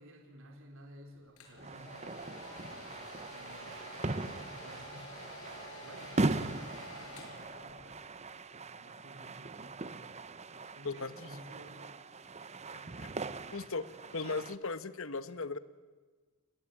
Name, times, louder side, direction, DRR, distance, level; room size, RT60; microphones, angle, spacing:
voice 1, 0.0-2.3 2.8-5.2 5.6-8.2 8.7-10.1 10.7-12.0 12.8-13.2, right 1 dB, 65° right, 2 dB, 4.1 m, -54 dB
Domestic sounds home sounds, 1.4-8.0, left 1 dB, 90° left, 6.0 m, -49 dB
sound 1, 1.6-14.5, right 2 dB, 30° right, 0.9 m, -40 dB
voice 2, 10.8-11.3 13.0-13.1 13.5-13.9 14.1-15.6, left 4 dB, 65° left, 13 dB, 1.3 m, -37 dB
30.0 x 19.5 x 9.9 m, 1.4 s
head